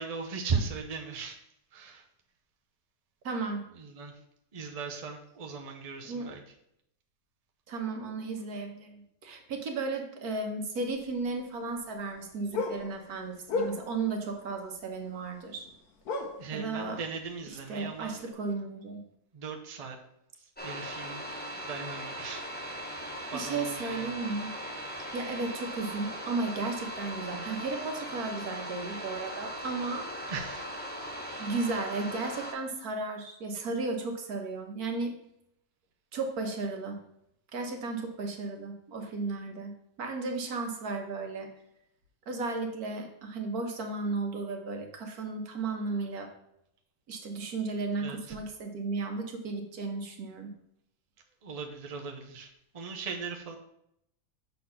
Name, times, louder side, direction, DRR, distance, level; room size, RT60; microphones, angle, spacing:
voice 1, 0.0-1.4 1.7-2.1 3.7-4.2 4.5-6.4 16.4-18.2 19.3-20.0 20.4-21.2 21.5-24.1 30.3-31.5 48.0-48.4 51.4-53.6, right 5 dB, 30° right, 2 dB, 0.7 m, -38 dB
voice 2, 3.2-3.7 6.0-6.3 7.7-15.7 16.5-17.0 17.7-19.0 23.3-24.5 25.1-30.1 31.4-35.1 36.1-37.0 37.5-39.7 40.0-41.5 42.3-46.3 47.1-50.5, right 3 dB, 75° right, 4 dB, 1.6 m, -34 dB
sound 1, 10.9-11.8 12.0-14.2 14.9-15.4 15.6-15.8 16.0-17.0 17.3-17.4 18.0-18.1, left 3 dB, 75° left, 1.5 m, -34 dB
sound 2, 20.6-32.5, equal, 10° left, 0.8 m, -39 dB
6.7 x 4.1 x 5.7 m, 0.76 s
omnidirectional pair, 1.6 m